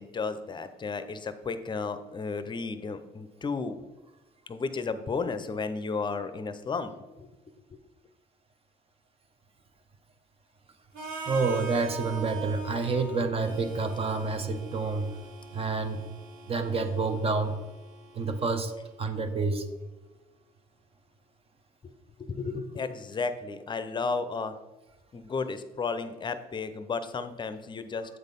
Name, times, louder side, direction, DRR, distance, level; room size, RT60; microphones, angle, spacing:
voice 1, 0.0-3.8 4.5-7.3 7.7-7.8 21.8-21.9 22.2-24.6 25.1-28.2, left 4 dB, 25° left, 11 dB, 0.6 m, -33 dB
Harmonica, 10.9-18.8, right 4 dB, 65° right, 2.2 m, -43 dB
voice 2, 11.3-15.1 15.5-16.0 16.5-17.5 18.1-18.7 19.0-19.7, right 4 dB, 35° right, 7 dB, 0.8 m, -28 dB
8.0 x 4.1 x 5.2 m, 1.1 s
cardioid pair, 110°, 17 cm